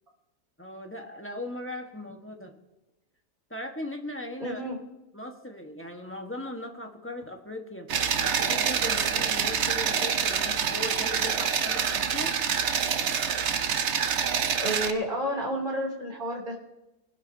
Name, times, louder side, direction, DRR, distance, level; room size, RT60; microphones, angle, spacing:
voice 1, 0.6-2.5 3.5-4.6 5.1-7.9 8.2-12.3, left 1 dB, 10° left, 2 dB, 1.2 m, -38 dB
voice 2, 4.4-4.8 14.6-16.6, equal, 30° right, -1 dB, 3.2 m, -30 dB
sound 1, 7.9-14.9, right 7 dB, 55° right, 0.9 m, -26 dB
22.0 x 12.0 x 2.8 m, 0.95 s
omnidirectional pair, 1.7 m